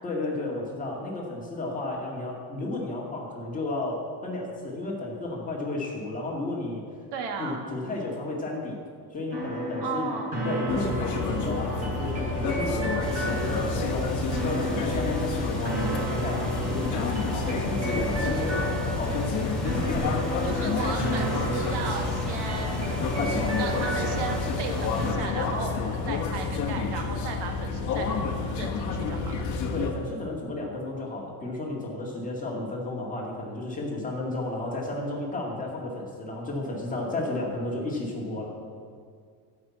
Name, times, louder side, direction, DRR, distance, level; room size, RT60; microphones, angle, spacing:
voice 1, 0.0-6.8 7.4-8.8 9.1-10.1 10.4-19.3 19.7-20.2 23.1-23.6 29.7-38.5, left 2 dB, 15° left, -3 dB, 2.1 m, -33 dB
voice 2, 7.1-7.6 9.8-10.3 20.4-23.0 23.3-28.1 28.6-29.4, right 4 dB, 60° right, 3 dB, 1.6 m, -35 dB
sound 1, 9.3-25.1, right 1 dB, 40° right, 3.7 m, -33 dB
sound 2, 10.7-29.9, left 4 dB, 40° left, 1.3 m, -30 dB
sound 3, 13.0-25.1, left 1 dB, ahead, 1.5 m, -36 dB
13.0 x 5.9 x 8.5 m, 2.1 s
cardioid pair, 160°, 46 cm